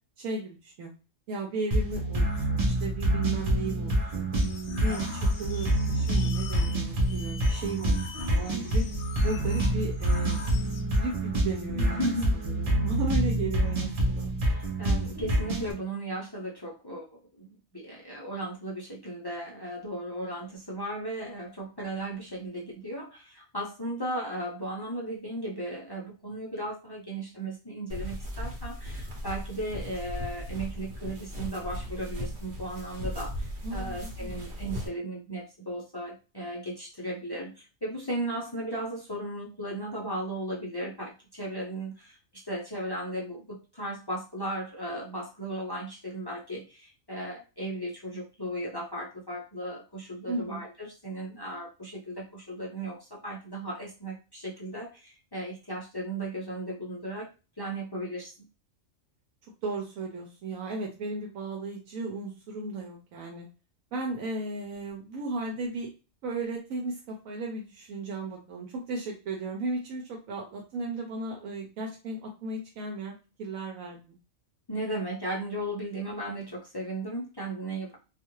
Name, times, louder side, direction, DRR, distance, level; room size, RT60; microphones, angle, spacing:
voice 1, 0.2-0.9 1.3-4.3 4.8-8.9 9.2-10.4 10.9-12.1 12.4-14.3 33.6-34.5 50.3-50.6 59.6-63.5 63.9-65.9 66.2-74.2, right 2 dB, 85° right, 0 dB, 1.0 m, -35 dB
sound 1, 1.7-15.7, right 1 dB, 40° right, 0.5 m, -27 dB
sound 2, 4.4-10.8, left 6 dB, 65° left, 0.8 m, -45 dB
voice 2, 11.8-12.4 14.5-57.3 57.6-58.5 74.7-78.0, right 1 dB, 40° left, -3 dB, 0.3 m, -36 dB
sound 3, 27.9-34.9, equal, 55° right, 1.1 m, -37 dB
2.4 x 2.4 x 3.0 m, 0.32 s
omnidirectional pair, 1.4 m